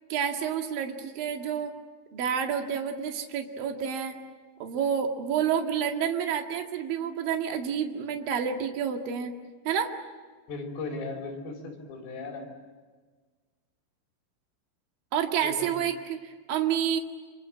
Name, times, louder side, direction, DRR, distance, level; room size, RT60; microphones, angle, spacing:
voice 1, 0.1-1.7 2.1-4.2 4.6-9.3 9.6-9.9 15.1-17.0, right 8 dB, 55° right, 3 dB, 3.1 m, -29 dB
voice 2, 10.5-12.5 15.4-15.7, left 3 dB, 55° left, 1 dB, 6.7 m, -37 dB
26.5 x 25.5 x 7.7 m, 1.4 s
omnidirectional pair, 6.0 m